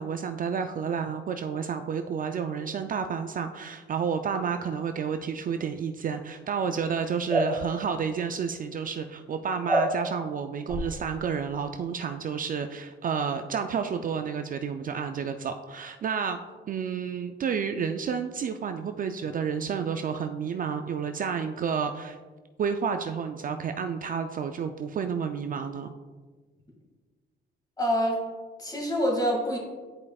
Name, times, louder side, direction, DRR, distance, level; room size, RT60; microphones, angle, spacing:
voice 1, 0.0-16.4 16.7-22.2 22.6-25.9, right 6 dB, 45° right, 7 dB, 0.4 m, -30 dB
sound 1, 7.3-7.5 9.7-9.9 10.7-10.8, right 1 dB, 5° right, 1.3 m, -24 dB
voice 2, 27.8-28.2 28.6-29.6, equal, 20° left, -2 dB, 2.0 m, -26 dB
9.7 x 4.8 x 2.3 m, 1.4 s
cardioid pair, 90°, 20 cm